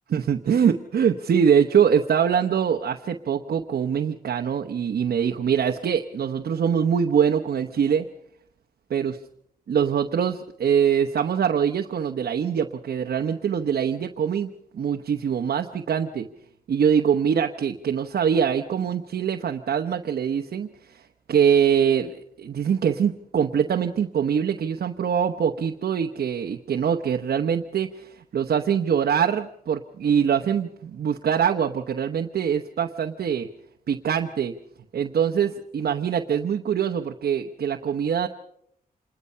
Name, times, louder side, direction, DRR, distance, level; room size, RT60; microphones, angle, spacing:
voice 1, 0.1-8.1 8.9-9.2 9.7-16.3 16.7-33.5 33.9-34.5 34.9-38.3, right 7 dB, 90° right, 4 dB, 0.9 m, -23 dB
27.0 x 20.5 x 5.6 m, 0.71 s
wide cardioid pair, 105°, 16 cm